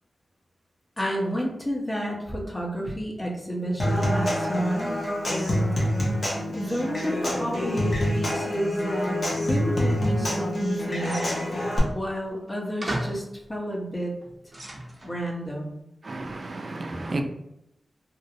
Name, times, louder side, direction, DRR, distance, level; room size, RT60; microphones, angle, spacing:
voice 1, 1.0-4.9 5.3-5.8 6.5-11.2 11.9-13.2 13.5-14.1 15.0-15.8, equal, 25° left, 0.8 m, -30 dB
Human voice / Acoustic guitar / Percussion, 3.8-11.8, equal, 55° left, 0.8 m, -26 dB
sound 1, 11.0-11.7 12.5-12.6 12.8-13.3 14.0-15.2, right 1 dB, 30° right, 0.7 m, -35 dB
voice 2, 16.0-17.2, right 2 dB, 55° right, 0.3 m, -32 dB
2.6 x 2.0 x 2.6 m
cardioid pair, 45°, 0 cm